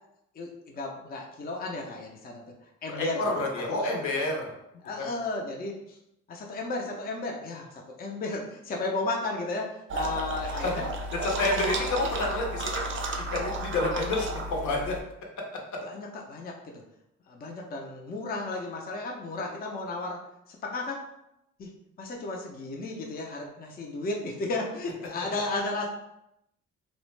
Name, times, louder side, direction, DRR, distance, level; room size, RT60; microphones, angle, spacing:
voice 1, 0.4-2.4 2.8-3.2 3.7-3.9 4.8-6.0 6.3-10.9 15.8-16.8 17.3-20.2 20.6-21.0 21.6-21.7 22.0-25.9, left 2 dB, 30° left, 0 dB, 0.5 m, -34 dB
voice 2, 2.9-4.6 5.0-5.1 10.4-10.8 11.1-12.8 13.1-15.0 15.7-15.8, left 2 dB, 75° left, 0 dB, 0.8 m, -29 dB
sound 1, 9.9-15.0, right 2 dB, 40° right, 0.4 m, -33 dB
2.3 x 2.1 x 3.1 m, 0.81 s
cardioid pair, 90°, 30 cm